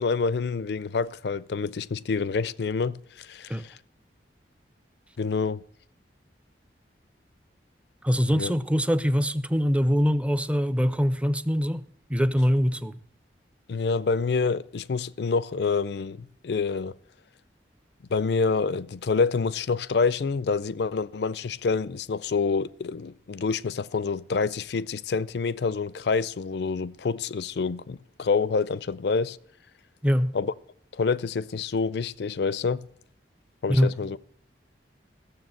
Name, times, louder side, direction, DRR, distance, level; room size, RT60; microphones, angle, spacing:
voice 1, 0.0-3.6 5.2-5.6 8.3-8.5 13.7-17.0 18.1-29.4 30.3-30.5 30.9-32.8 33.6-34.2, left 4 dB, 70° left, 0.4 m, -27 dB
voice 2, 8.0-13.0 30.0-30.4 33.7-34.0, equal, 5° right, 0.5 m, -23 dB
15.5 x 7.1 x 7.6 m
head